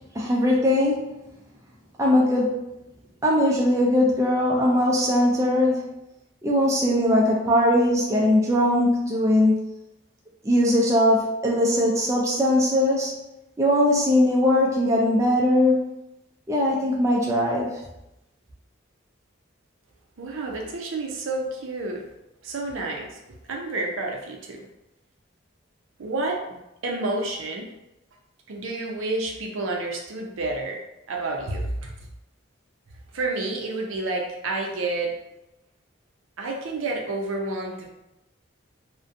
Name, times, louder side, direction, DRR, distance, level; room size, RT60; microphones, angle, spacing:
voice 1, 0.1-1.2 2.0-2.7 3.2-5.9 6.4-9.6 10.4-13.2 13.6-15.8 16.5-17.8, left 1 dB, 15° right, -4 dB, 0.3 m, -20 dB
voice 2, 20.2-22.0 22.4-23.2 23.5-24.6 26.0-27.7 28.5-30.8 31.1-32.1 33.1-35.1 36.4-37.9, right 2 dB, 75° right, 0 dB, 0.5 m, -29 dB
2.5 x 2.1 x 2.5 m, 0.90 s
head